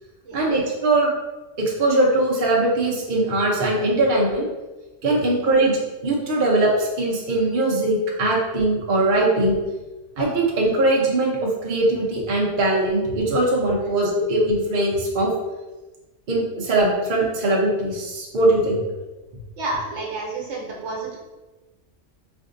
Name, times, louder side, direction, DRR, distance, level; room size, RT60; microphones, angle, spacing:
voice 1, 0.3-1.1 1.6-4.5 5.0-9.6 10.2-15.3 16.3-18.8, right 2 dB, 50° right, -3 dB, 0.7 m, -21 dB
voice 2, 19.6-21.2, right 2 dB, 65° right, -2 dB, 1.1 m, -30 dB
4.3 x 2.6 x 2.5 m, 1.2 s
omnidirectional pair, 1.3 m